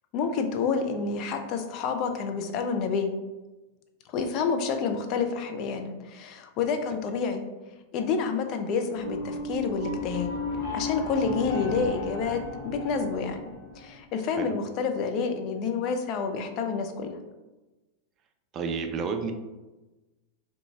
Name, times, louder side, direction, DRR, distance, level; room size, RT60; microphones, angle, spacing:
voice 1, 0.1-3.1 4.1-7.5 7.9-10.3 10.7-17.2, left 5 dB, 40° left, 6 dB, 0.4 m, -29 dB
sound 1, 9.0-14.0, left 2 dB, 55° left, 1.0 m, -34 dB
voice 2, 18.5-19.3, right 5 dB, 30° right, 6 dB, 0.3 m, -30 dB
3.7 x 2.3 x 2.8 m, 1.1 s
figure-of-eight pair, 90°, 0 cm